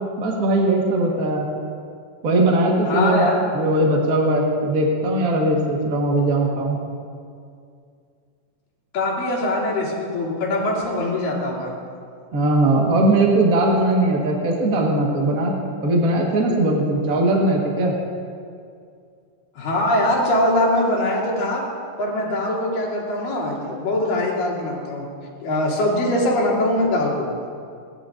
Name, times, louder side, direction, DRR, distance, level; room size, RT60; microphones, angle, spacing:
voice 1, 0.2-1.4 2.2-3.3 3.5-6.8 12.3-15.5 15.8-17.9, right 1 dB, 40° right, -1 dB, 1.3 m, -19 dB
voice 2, 2.9-3.4 8.9-11.7 19.6-21.6 22.0-25.1 25.4-27.3, left 1 dB, 80° left, -7 dB, 4.5 m, -22 dB
27.5 x 10.0 x 2.6 m, 2.3 s
omnidirectional pair, 3.9 m